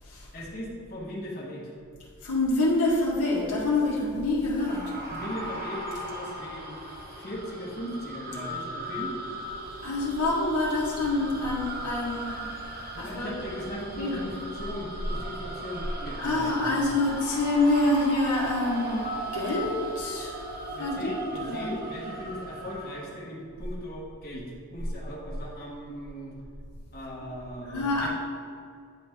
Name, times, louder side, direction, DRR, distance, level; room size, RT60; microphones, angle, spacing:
voice 1, 0.3-1.7 5.1-9.1 12.9-16.7 20.7-24.5 24.7-26.4 26.9-28.1, equal, 45° left, -5 dB, 1.4 m, -38 dB
voice 2, 2.2-5.0 9.8-12.4 13.0-13.3 13.7-14.3 16.2-19.0 19.3-20.3 20.8-21.1 21.4-21.7 27.6-28.1, left 2 dB, 70° left, -4 dB, 1.3 m, -26 dB
sound 1, 4.6-23.1, right 1 dB, 40° right, 1.1 m, -38 dB
9.6 x 4.3 x 3.5 m, 2.3 s
head